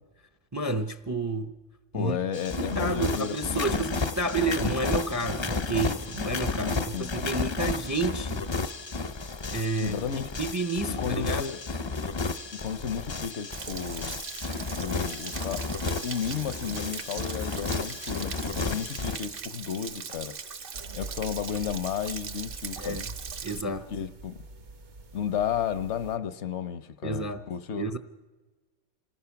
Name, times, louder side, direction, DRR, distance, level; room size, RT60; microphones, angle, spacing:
voice 1, 0.5-1.5 1.9-2.2 2.6-8.5 9.5-10.0 10.4-11.6 22.8-23.1 23.4-23.9 27.0-27.4 27.8-28.0, right 2 dB, 25° right, 0.4 m, -30 dB
voice 2, 1.9-3.6 6.6-7.1 9.8-10.3 11.0-11.6 12.5-14.1 14.8-15.7 16.0-20.5 20.9-23.0 23.9-24.4 25.1-27.9, left 8 dB, 70° left, 1.1 m, -33 dB
sound 1, 2.3-19.2, left 3 dB, 30° left, 0.5 m, -32 dB
Stream / Splash splatter / Trickle dribble, 13.5-23.6, right 6 dB, 50° right, 1.0 m, -40 dB
sound 2, 20.7-26.2, right 3 dB, 70° right, 1.5 m, -45 dB
26.5 x 19.5 x 5.8 m
omnidirectional pair, 1.2 m